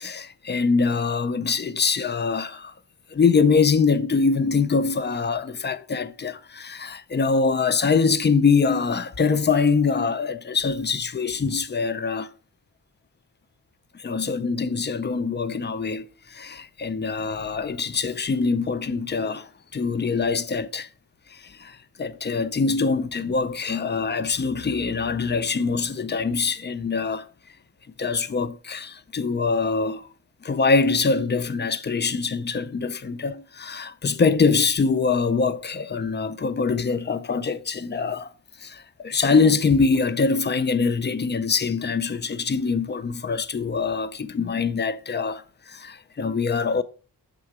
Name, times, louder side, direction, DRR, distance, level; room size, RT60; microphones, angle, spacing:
voice 1, 0.0-2.7 3.1-12.3 13.9-20.9 21.3-27.3 28.0-30.1 30.4-38.3 38.6-46.8, left 4 dB, 30° left, 0.4 m, -24 dB
6.5 x 3.7 x 4.7 m
wide cardioid pair, 130°, 37 cm